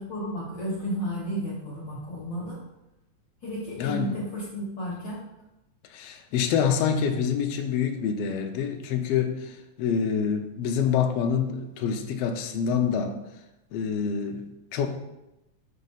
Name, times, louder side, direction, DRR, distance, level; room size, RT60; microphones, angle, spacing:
voice 1, 0.0-2.6 3.4-5.2, equal, 45° left, -5 dB, 1.8 m, -32 dB
voice 2, 3.8-4.1 5.9-13.2 13.7-14.9, left 7 dB, 85° left, 4 dB, 1.4 m, -26 dB
6.5 x 4.1 x 5.6 m, 0.93 s
omnidirectional pair, 3.7 m